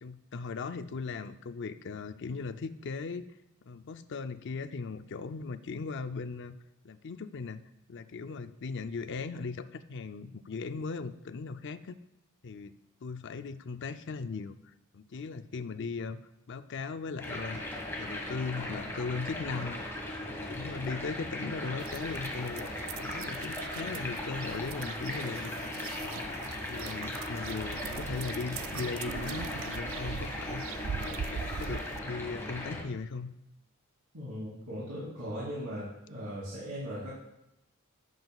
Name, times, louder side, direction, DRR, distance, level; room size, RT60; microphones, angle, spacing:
voice 1, 0.0-3.3 3.6-6.6 6.8-7.6 7.9-12.0 12.4-12.7 13.0-14.6 14.9-16.2 16.5-17.6 18.0-19.8 20.3-22.7 23.0-25.5 26.0-26.4 26.7-30.6 31.0-33.3, left 4 dB, 55° left, 11 dB, 0.5 m, -38 dB
sound 1, 17.2-32.8, left 1 dB, 10° left, 1.7 m, -38 dB
sound 2, 21.8-32.0, right 6 dB, 65° right, 0.4 m, -42 dB
voice 2, 34.1-37.1, equal, 85° right, -10 dB, 3.2 m, -38 dB
15.5 x 7.9 x 2.4 m, 0.89 s
head